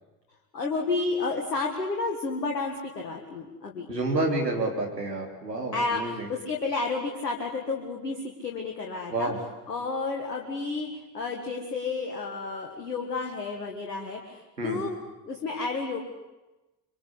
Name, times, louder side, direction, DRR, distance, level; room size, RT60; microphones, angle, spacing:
voice 1, 0.5-3.9 5.7-9.3 9.7-14.9 15.3-16.0, left 3 dB, 85° left, 1 dB, 2.0 m, -31 dB
voice 2, 3.9-6.3 9.1-9.4 14.6-14.8, right 2 dB, 90° right, -1 dB, 3.5 m, -29 dB
25.5 x 24.5 x 8.5 m, 1.1 s
figure-of-eight pair, 50°, 48 cm